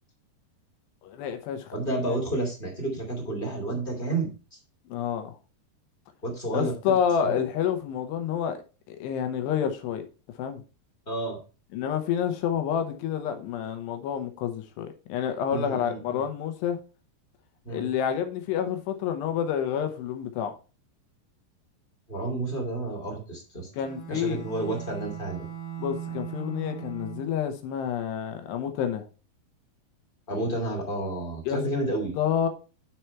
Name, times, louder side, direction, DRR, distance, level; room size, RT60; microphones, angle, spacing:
voice 1, 1.0-1.7 4.9-5.3 6.5-8.6 8.9-10.0 10.4-10.6 11.7-16.8 17.7-20.5 23.7-24.4 25.8-29.0 31.5-31.6 32.2-32.5, left 8 dB, 80° left, 3.0 m, -28 dB
voice 2, 1.7-4.3 6.2-7.0 7.2-7.4 11.1-11.4 15.5-16.2 17.6-17.9 22.1-23.7 24.1-25.5 30.3-32.2, right 2 dB, 15° left, 1.9 m, -30 dB
Bowed string instrument, 23.7-27.6, right 9 dB, 55° left, 1.6 m, -39 dB
9.9 x 4.6 x 4.5 m
omnidirectional pair, 5.0 m